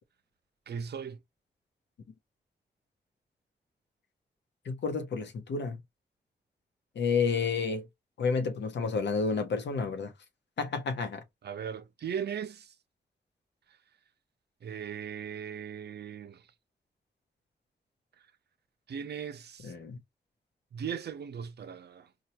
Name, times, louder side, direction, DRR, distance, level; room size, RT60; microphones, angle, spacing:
voice 1, 0.7-1.2 11.4-12.7 14.6-16.4 18.9-19.7 20.7-22.1, right 7 dB, 70° right, 0.6 m, -38 dB
voice 2, 4.7-5.8 7.0-7.9 8.2-10.1 10.6-11.2 19.6-20.0, left 5 dB, 85° left, 0.9 m, -30 dB
4.3 x 2.3 x 2.9 m
cardioid pair, 55°, 18 cm